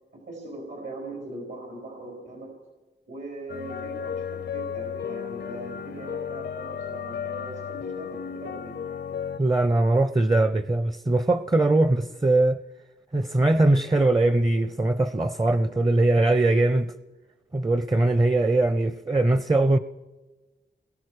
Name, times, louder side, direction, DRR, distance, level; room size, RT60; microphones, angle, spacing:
voice 1, 0.1-2.5 3.1-8.8, right 2 dB, 80° right, 4.6 m, -40 dB
sound 1, 3.5-9.4, left 8 dB, 65° left, 0.6 m, -34 dB
voice 2, 9.4-12.6 13.1-16.9 17.5-19.8, right 2 dB, 20° right, 0.6 m, -21 dB
28.5 x 22.0 x 4.9 m
wide cardioid pair, 75°, 19 cm